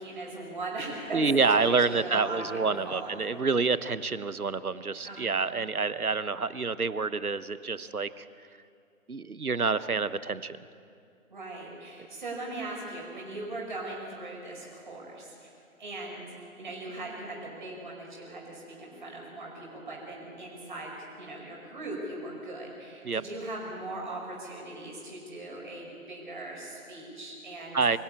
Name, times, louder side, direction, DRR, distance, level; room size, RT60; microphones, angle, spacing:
voice 1, 0.0-3.4 5.0-5.5 11.3-15.5 15.8-27.8, right 2 dB, 35° right, -2 dB, 5.5 m, -39 dB
voice 2, 1.1-8.3 9.1-10.6 23.0-23.2 27.7-28.0, right 4 dB, 85° right, 15 dB, 1.0 m, -28 dB
24.5 x 15.0 x 8.6 m, 2.4 s
figure-of-eight pair, 160°, 43 cm